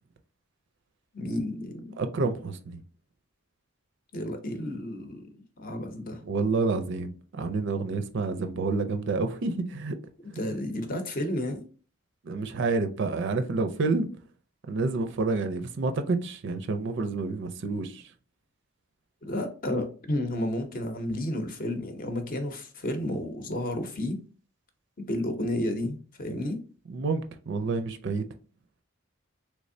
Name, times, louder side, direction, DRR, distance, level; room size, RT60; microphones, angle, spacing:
voice 1, 1.1-2.0 4.1-5.3 5.6-6.2 10.3-11.7 19.2-24.2 25.0-26.6, left 1 dB, 40° left, 0.7 m, -31 dB
voice 2, 2.0-2.8 6.2-9.9 10.4-10.5 12.2-14.1 14.7-18.0 26.9-28.3, right 3 dB, 60° right, 0.4 m, -29 dB
3.4 x 3.2 x 2.6 m
head